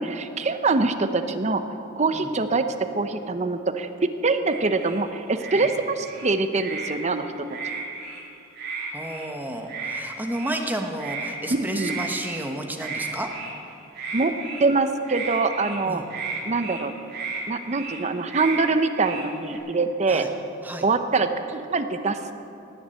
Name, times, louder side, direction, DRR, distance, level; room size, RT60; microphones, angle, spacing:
voice 1, 0.0-1.6 2.0-7.3 11.5-12.0 14.1-14.3 14.6-16.0 16.4-16.9 17.5-20.3 20.8-22.3, right 3 dB, 35° right, 9 dB, 0.7 m, -24 dB
sound 1, 4.5-5.0 5.4-5.7 6.0-6.9 7.5-8.2 8.5-9.3 9.7-10.0 10.3-10.6 11.0-11.3 11.7-12.5 12.8-13.6 14.0-14.7 15.0-15.8 16.1-16.8 17.1-17.4 17.7-18.0 18.3-18.6 18.9-19.6, right 4 dB, 55° right, 2.6 m, -34 dB
voice 2, 8.9-13.3 15.9-16.0 20.1-20.3 20.6-20.8, right 1 dB, 10° right, 3 dB, 1.1 m, -31 dB
19.0 x 7.2 x 7.7 m, 2.8 s
head